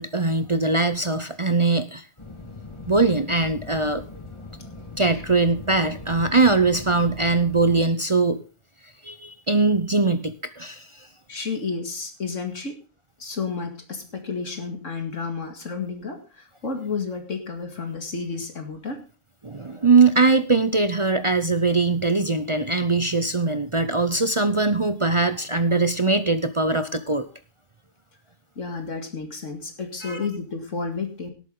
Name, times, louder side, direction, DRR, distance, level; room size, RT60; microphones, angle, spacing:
voice 1, 0.0-2.0 2.9-4.0 5.0-8.4 9.0-11.1 19.4-27.3 30.0-30.2, right 3 dB, 30° right, 11 dB, 0.6 m, -21 dB
sound 1, 2.2-7.8, left 3 dB, 20° left, 1.9 m, -40 dB
voice 2, 11.3-12.8 13.2-19.0 28.6-31.3, left 4 dB, 65° left, 5 dB, 2.5 m, -31 dB
18.5 x 8.4 x 3.8 m, 0.34 s
omnidirectional pair, 1.4 m